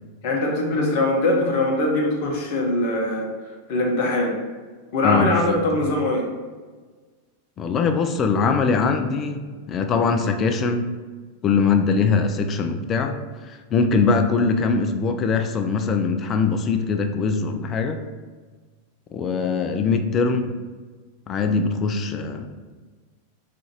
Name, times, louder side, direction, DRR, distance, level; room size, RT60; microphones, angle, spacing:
voice 1, 0.2-4.4 4.9-6.3, left 1 dB, 50° left, 0 dB, 0.7 m, -22 dB
voice 2, 5.0-5.6 7.6-10.9 11.4-13.1 13.4-18.0 19.1-20.5 21.3-22.5, left 4 dB, 30° left, 6 dB, 0.3 m, -22 dB
3.7 x 2.5 x 2.9 m, 1.4 s
figure-of-eight pair, 90°, 0 cm